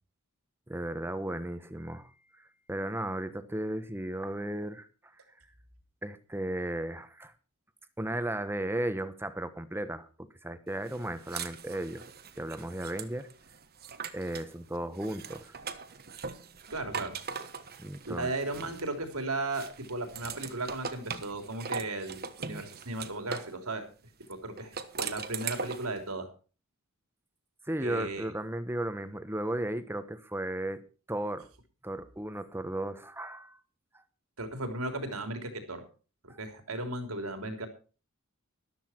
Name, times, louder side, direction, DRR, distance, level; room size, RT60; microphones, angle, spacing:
voice 1, 0.7-2.1 2.4-4.9 6.0-7.3 8.0-12.0 12.4-13.3 14.1-15.5 17.8-18.3 23.3-23.4 27.7-30.8 31.1-31.5 31.8-33.6 33.9-34.0 36.3-36.4, right 1 dB, 10° right, 11 dB, 1.2 m, -35 dB
sound 1, 10.9-14.5 14.9-19.1 19.5-23.5 24.6-26.0, right 6 dB, 45° right, 1.3 m, -40 dB
voice 2, 16.7-17.2 18.1-23.9 24.3-26.3 27.8-28.3 34.4-35.8 36.2-37.7, right 2 dB, 80° right, 6 dB, 3.4 m, -36 dB
14.0 x 12.5 x 4.5 m, 0.36 s
head